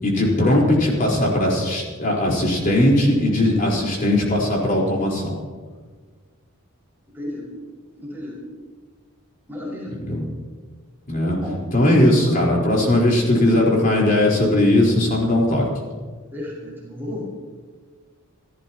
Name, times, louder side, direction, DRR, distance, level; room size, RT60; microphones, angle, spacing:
voice 1, 0.0-5.3 10.1-10.3 11.1-11.4 11.7-15.6, left 1 dB, 40° left, -3 dB, 4.3 m, -18 dB
voice 2, 7.1-7.5 8.0-8.4 9.5-9.9 11.4-11.6 16.3-17.2, left 1 dB, 10° right, -7 dB, 5.9 m, -33 dB
27.5 x 14.5 x 3.0 m, 1.5 s
head